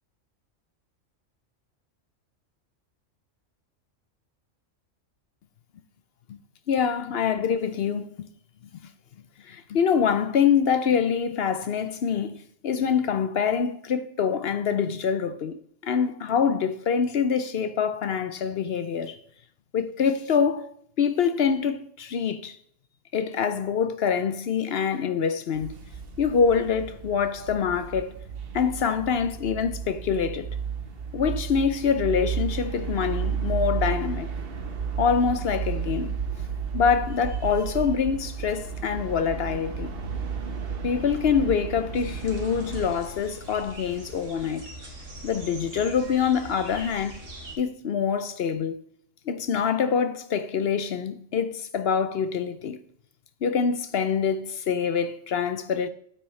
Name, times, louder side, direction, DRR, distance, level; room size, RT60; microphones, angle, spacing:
voice 1, 6.7-8.3 9.4-15.6 15.8-19.2 19.7-22.6 23.1-25.8 26.2-28.1 28.5-30.5 31.1-34.3 35.0-36.1 36.7-39.9 40.8-44.7 45.2-47.2 47.6-48.8 49.3-52.8 53.4-55.9, left 6 dB, 60° left, 0.8 m, -25 dB
sound 1, 25.5-42.9, right 6 dB, 50° right, 1.2 m, -33 dB
sound 2, 41.9-47.6, right 1 dB, 75° right, 2.3 m, -42 dB
8.9 x 8.6 x 3.2 m
omnidirectional pair, 1.3 m